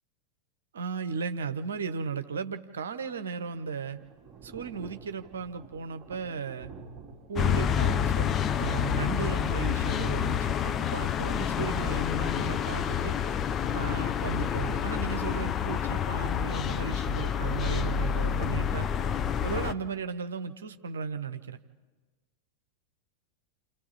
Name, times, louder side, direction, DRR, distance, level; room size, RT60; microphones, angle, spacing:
voice 1, 0.7-4.0 4.4-6.7 7.3-13.2 13.7-18.9 19.4-21.6, right 6 dB, 65° right, 10 dB, 1.0 m, -35 dB
Thunder / Rain, 3.1-15.0, right 4 dB, 20° right, 3.4 m, -52 dB
sound 1, 7.4-19.7, left 8 dB, 25° left, 0.7 m, -28 dB
28.5 x 28.5 x 4.1 m, 1.3 s
figure-of-eight pair, 90°, 0 cm